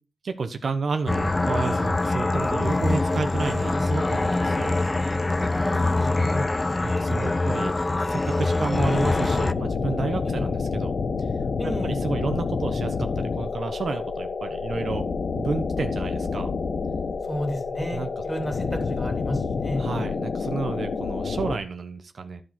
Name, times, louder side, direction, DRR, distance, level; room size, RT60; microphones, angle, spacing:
voice 1, 0.2-4.8 6.2-6.5 6.8-7.7 8.1-10.9 11.2-11.3 11.6-15.0 15.4-16.5 17.9-18.1 19.8-22.4, right 4 dB, 70° right, 7 dB, 1.0 m, -31 dB
sound 1, 1.1-9.5, left 2 dB, 25° left, 0.4 m, -24 dB
voice 2, 5.4-6.4 7.2-7.4 8.6-8.7 10.3-10.4 11.6-12.0 17.2-19.8, equal, ahead, 4 dB, 3.2 m, -32 dB
sound 2, 8.7-21.6, left 4 dB, 75° left, 1.0 m, -28 dB
12.5 x 4.9 x 5.9 m, 0.35 s
wide cardioid pair, 115°, 0 cm